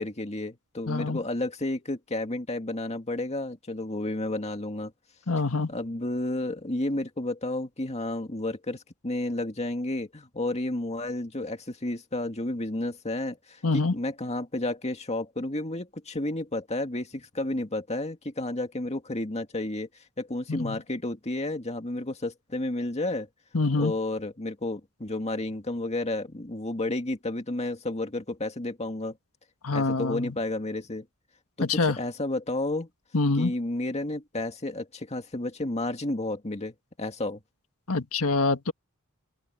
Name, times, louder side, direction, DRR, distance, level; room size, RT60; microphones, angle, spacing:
voice 1, 0.0-4.9 5.7-19.9 20.2-23.3 23.8-29.2 29.7-31.1 31.6-32.9 33.4-37.4, left 2 dB, 30° left, 2.1 m, -31 dB
voice 2, 0.9-1.2 5.3-5.7 13.6-13.9 20.5-20.8 23.5-23.9 29.6-30.3 31.6-32.0 33.1-33.5 37.9-38.7, left 3 dB, 75° left, 1.7 m, -25 dB
open air
head